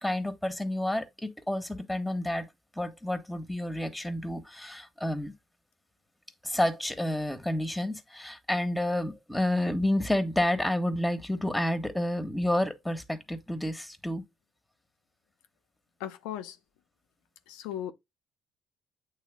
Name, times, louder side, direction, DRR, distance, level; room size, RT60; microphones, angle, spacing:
voice 1, 0.0-2.5 2.8-5.3 6.4-14.2, left 1 dB, 5° left, 1.3 m, -30 dB
voice 2, 16.0-16.6 17.5-17.9, left 11 dB, 85° left, 0.7 m, -37 dB
8.4 x 3.2 x 3.5 m
supercardioid pair, 65°, 0 cm